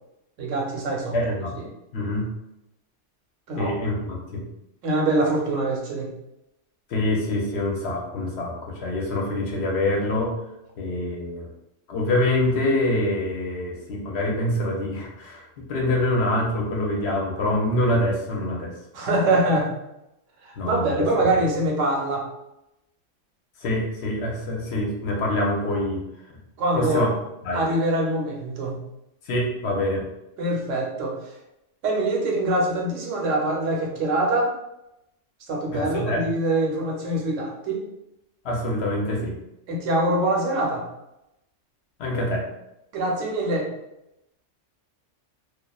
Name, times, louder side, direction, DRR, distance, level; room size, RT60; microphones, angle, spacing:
voice 1, 0.4-1.2 3.5-3.7 4.8-6.1 18.9-19.7 20.4-22.2 26.6-27.0 27.5-28.8 30.4-31.2 31.8-34.5 35.5-37.8 39.7-40.8 42.9-43.7, right 2 dB, 85° right, -1 dB, 1.0 m, -24 dB
voice 2, 1.1-2.3 3.6-4.4 6.9-10.3 10.8-11.5 11.9-18.7 20.6-21.1 23.6-26.0 26.7-27.1 27.4-27.6 29.2-30.0 35.7-36.2 38.4-39.4 42.0-42.4, left 1 dB, 65° left, -1 dB, 0.8 m, -25 dB
2.4 x 2.3 x 2.2 m, 0.88 s
omnidirectional pair, 1.3 m